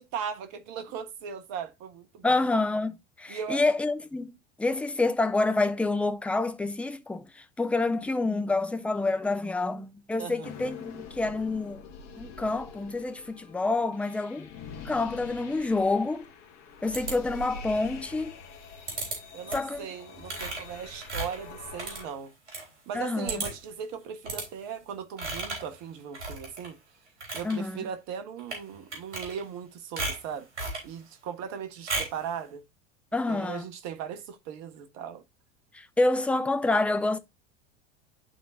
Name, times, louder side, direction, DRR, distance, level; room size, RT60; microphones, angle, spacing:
voice 1, 0.0-2.4 3.3-3.6 10.2-10.5 19.3-22.3 22.9-26.8 27.3-30.5 30.8-32.6 33.3-35.2, right 7 dB, 50° right, 1.4 m, -38 dB
voice 2, 2.2-11.8 12.1-14.5 14.8-16.2 16.8-18.3 19.5-19.9 22.9-23.4 27.4-27.8 33.1-33.7 35.7-37.2, left 2 dB, 5° left, 0.6 m, -28 dB
sound 1, 10.4-22.1, left 5 dB, 50° left, 1.7 m, -45 dB
sound 2, 16.9-17.6 18.9-19.2 19.5-19.8 20.2-22.6 22.9-23.0 23.3-23.7 24.2-24.5 25.2-25.7 26.1-26.7 27.1-27.5 28.4-28.6 28.9-29.6 30.0-30.9 31.9-32.2, right 2 dB, 80° right, 3.6 m, -35 dB
11.5 x 3.8 x 2.7 m
hypercardioid pair, 85°, 35 cm